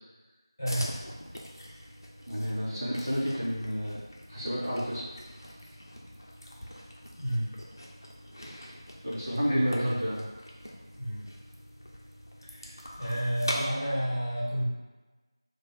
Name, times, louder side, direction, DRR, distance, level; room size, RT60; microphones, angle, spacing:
voice 1, 0.6-1.0 7.2-7.5 9.2-10.3 11.0-11.3 12.4-14.7, equal, 30° left, -8 dB, 1.2 m, -31 dB
sound 1, 0.7-13.7, equal, 45° left, 0.7 m, -43 dB
voice 2, 2.3-4.0 4.3-5.0 9.0-10.2 13.5-13.7, equal, 35° right, -8 dB, 1.2 m, -30 dB
4.3 x 2.5 x 4.6 m, 1.2 s
figure-of-eight pair, 180°, 3 cm